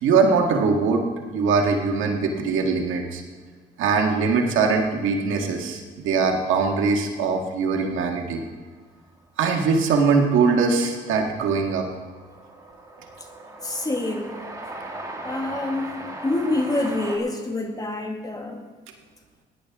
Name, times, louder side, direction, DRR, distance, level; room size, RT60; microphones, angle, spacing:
voice 1, 0.0-1.0 1.3-3.2 3.8-8.4 9.4-11.9, right 4 dB, 85° right, 2 dB, 1.8 m, -21 dB
Train, 9.8-9.9 10.0-17.2, right 2 dB, 15° right, 2.2 m, -38 dB
voice 2, 13.6-14.4 15.2-16.0 16.2-18.7, left 2 dB, 20° left, 3 dB, 1.8 m, -26 dB
17.0 x 11.0 x 3.7 m, 1.5 s
cardioid pair, 90°, 20 cm